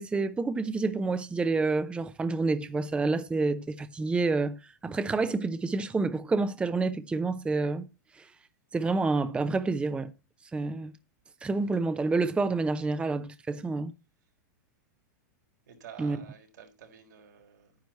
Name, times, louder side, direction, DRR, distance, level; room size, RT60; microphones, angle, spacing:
voice 1, 0.0-7.9 8.1-8.3 8.7-10.1 10.5-10.9 11.4-13.9 16.0-16.2, right 3 dB, 10° right, 0.7 m, -28 dB
voice 2, 15.7-17.8, right 9 dB, 80° right, 4.1 m, -50 dB
10.5 x 9.7 x 4.3 m
hypercardioid pair, 120°, 10 cm